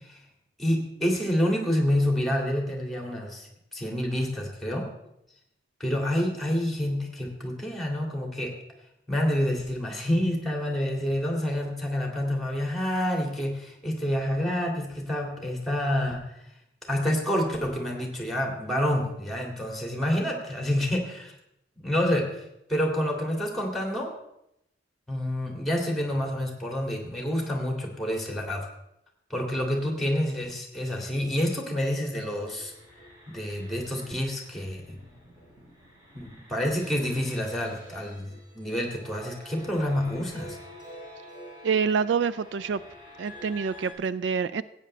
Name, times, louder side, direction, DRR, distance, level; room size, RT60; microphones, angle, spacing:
voice 1, 0.6-4.9 5.8-8.5 9.1-16.2 16.9-21.3 21.8-22.3 22.7-24.1 25.1-28.7 29.3-32.7 33.3-35.0 36.1-40.6, left 1 dB, ahead, 1 dB, 2.2 m, -28 dB
sound 1, 32.3-43.9, equal, 25° right, 3.4 m, -48 dB
voice 2, 41.6-42.8 43.2-44.6, right 6 dB, 75° right, 16 dB, 0.3 m, -26 dB
16.0 x 8.8 x 3.3 m, 0.80 s
head